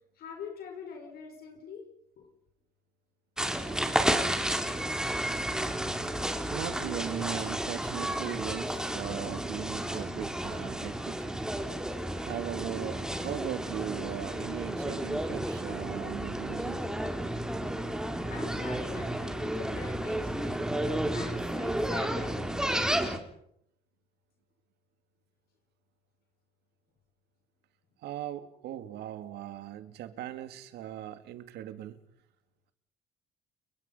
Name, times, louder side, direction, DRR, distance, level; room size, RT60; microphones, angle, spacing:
voice 1, 0.1-1.8 2.2-2.3 18.3-20.7 21.1-22.4, left 5 dB, 65° left, 3 dB, 5.9 m, -44 dB
sound 1, 3.4-23.2, right 1 dB, 5° right, 3.7 m, -32 dB
voice 2, 6.5-11.2 12.2-16.8 28.0-32.0, right 11 dB, 80° right, 10 dB, 2.4 m, -39 dB
30.0 x 22.5 x 5.7 m, 0.71 s
cardioid pair, 110°, 17 cm